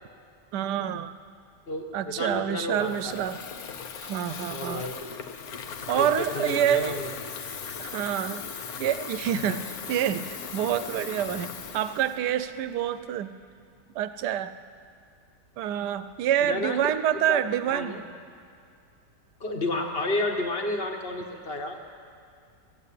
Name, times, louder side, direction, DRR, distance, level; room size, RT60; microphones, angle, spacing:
voice 1, 0.5-1.1 1.9-3.4 4.1-4.9 5.9-7.0 7.8-8.5 8.8-9.6 9.9-13.3 14.0-14.5 15.6-17.9, right 10 dB, 75° right, 12 dB, 1.1 m, -27 dB
voice 2, 1.7-3.3 4.5-5.0 5.9-7.1 9.3-9.6 16.4-16.8 17.1-17.4 17.7-18.0 19.4-21.8, left 2 dB, 40° left, 2 dB, 1.3 m, -31 dB
Water tap faucet / Fill (with liquid), 2.7-13.0, left 6 dB, 65° left, 1.2 m, -39 dB
14.5 x 8.3 x 8.3 m, 2.3 s
omnidirectional pair, 1.8 m